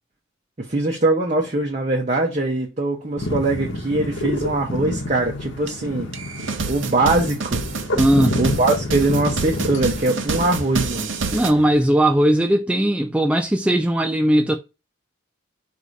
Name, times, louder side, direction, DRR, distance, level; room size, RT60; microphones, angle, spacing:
voice 1, 0.6-6.1 6.7-7.6 8.4-11.1, right 2 dB, 35° right, 0.8 m, -22 dB
sound 1, 3.2-11.9, left 1 dB, 65° left, 1.0 m, -29 dB
sound 2, 5.7-5.8 6.1-11.5, right 4 dB, 70° right, 0.7 m, -28 dB
voice 2, 8.0-8.4 11.3-14.5, right 1 dB, 5° right, 0.3 m, -18 dB
4.8 x 2.7 x 3.9 m
head